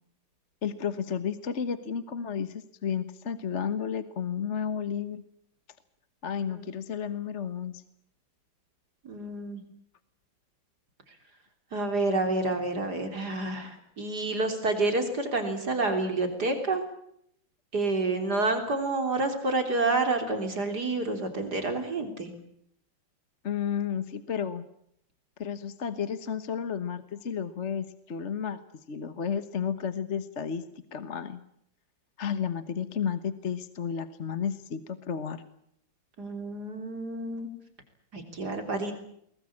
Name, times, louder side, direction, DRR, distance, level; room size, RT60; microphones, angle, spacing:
voice 1, 0.6-5.2 6.2-7.8 23.4-24.6 25.4-28.6 28.9-30.6 30.9-31.4 32.2-35.4, left 7 dB, 40° left, 13 dB, 1.4 m, -32 dB
voice 2, 9.0-9.6 11.7-16.8 17.7-22.3 36.2-37.5 38.1-38.9, right 2 dB, 55° right, 6 dB, 3.9 m, -29 dB
22.5 x 21.0 x 8.6 m, 0.71 s
omnidirectional pair, 2.0 m